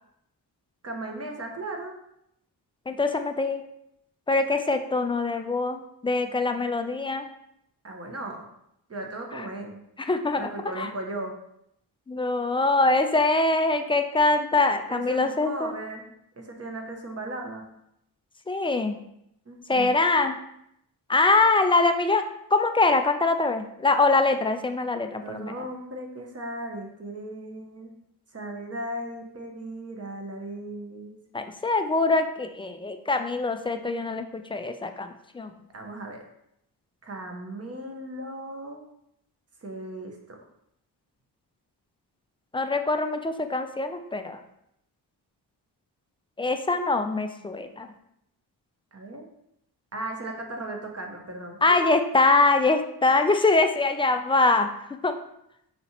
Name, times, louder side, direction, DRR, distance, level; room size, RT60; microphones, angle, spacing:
voice 1, 0.8-2.0 7.8-8.5 8.9-9.8 10.3-11.3 14.9-16.1 16.4-17.7 19.5-20.0 25.2-27.9 28.3-31.2 35.7-36.2 37.0-38.8 39.6-40.4 48.9-49.3 49.9-51.8, right 1 dB, 35° right, 2 dB, 1.0 m, -36 dB
voice 2, 2.9-3.6 4.3-7.3 10.0-10.4 10.8-10.9 12.1-15.8 18.5-19.0 19.7-20.4 21.1-22.2 22.5-25.5 31.3-35.1 35.3-35.5 42.5-44.4 46.4-47.9 51.6-54.7 55.0-55.1, left 3 dB, 15° left, 7 dB, 0.3 m, -23 dB
5.2 x 2.9 x 2.9 m, 0.77 s
cardioid pair, 70°, 42 cm